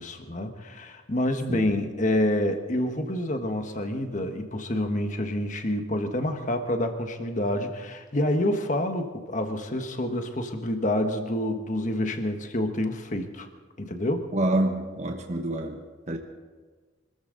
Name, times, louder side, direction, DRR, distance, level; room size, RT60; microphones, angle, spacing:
voice 1, 0.0-13.5 13.8-14.3, left 1 dB, 40° left, 6 dB, 1.4 m, -28 dB
voice 2, 14.3-16.2, right 1 dB, 35° right, 3 dB, 1.2 m, -27 dB
25.0 x 14.5 x 4.0 m, 1.4 s
head